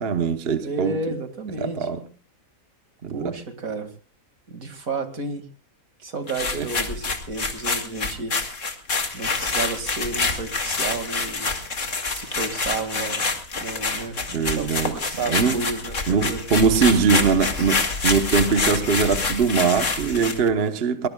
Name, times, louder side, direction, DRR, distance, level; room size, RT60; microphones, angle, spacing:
voice 1, 0.0-1.0 1.6-2.0 3.0-3.3 6.5-6.7 14.3-14.9 15.3-15.6 16.1-21.1, right 5 dB, 45° right, 1.3 m, -22 dB
voice 2, 0.6-1.9 3.1-3.9 4.5-5.5 6.0-8.3 9.1-11.5 12.1-13.3 13.5-16.4 17.1-17.3, right 3 dB, 75° right, 2.7 m, -31 dB
sound 1, 6.3-20.5, left 4 dB, 60° left, 2.4 m, -27 dB
22.5 x 20.5 x 2.3 m
omnidirectional pair, 1.5 m